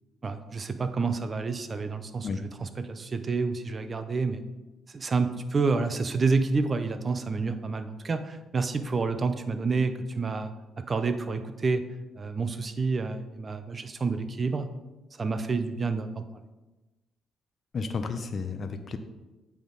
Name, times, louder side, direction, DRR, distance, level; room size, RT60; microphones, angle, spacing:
voice 1, 0.2-2.3 2.6-4.4 4.9-11.8 12.2-14.7 15.2-16.2, right 4 dB, 35° right, 9 dB, 0.5 m, -29 dB
voice 2, 17.7-19.0, left 4 dB, 45° left, 7 dB, 0.5 m, -32 dB
8.3 x 3.5 x 3.9 m, 1.1 s
cardioid pair, 90°, 0 cm